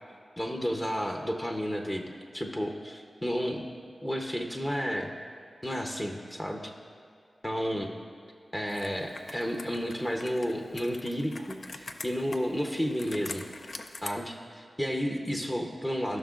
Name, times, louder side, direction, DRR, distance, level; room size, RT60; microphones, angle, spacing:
voice 1, 0.4-2.0 2.3-3.7 4.0-5.1 5.6-6.7 7.4-7.9 8.5-13.4 14.0-16.2, equal, 15° left, 2 dB, 0.7 m, -32 dB
Computer keyboard, 8.7-14.1, left 3 dB, 65° left, 0.4 m, -44 dB
15.0 x 5.8 x 2.5 m, 2.3 s
wide cardioid pair, 65°, 0 cm